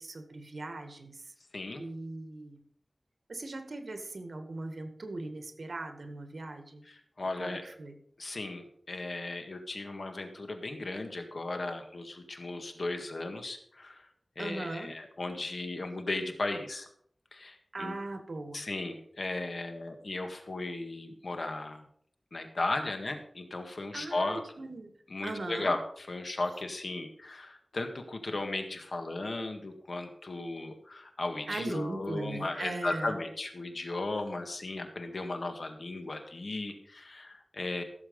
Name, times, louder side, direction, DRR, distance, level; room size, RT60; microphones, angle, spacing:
voice 1, 0.0-1.3 1.8-2.6 3.3-6.8 7.4-7.9 14.4-14.9 17.7-18.7 23.9-24.9 25.2-25.7 31.5-33.2, right 2 dB, 75° right, 7 dB, 1.8 m, -39 dB
voice 2, 1.5-1.9 6.9-7.6 8.2-14.1 14.4-16.9 17.3-17.9 18.5-21.8 22.3-24.4 25.1-37.8, left 2 dB, 75° left, 6 dB, 1.8 m, -36 dB
15.5 x 7.3 x 5.4 m, 0.65 s
wide cardioid pair, 75°, 0 cm